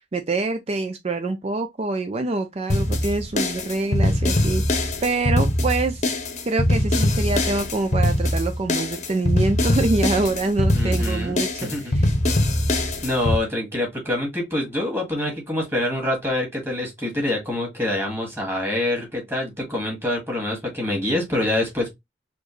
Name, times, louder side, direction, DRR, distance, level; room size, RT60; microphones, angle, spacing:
voice 1, 0.1-6.0 6.5-12.1, right 3 dB, 35° right, 0.4 m, -25 dB
sound 1, 2.7-13.4, left 1 dB, 40° left, 0.8 m, -22 dB
voice 2, 10.7-11.9 13.0-21.9, left 1 dB, 15° right, 1.9 m, -26 dB
4.3 x 2.9 x 3.1 m
head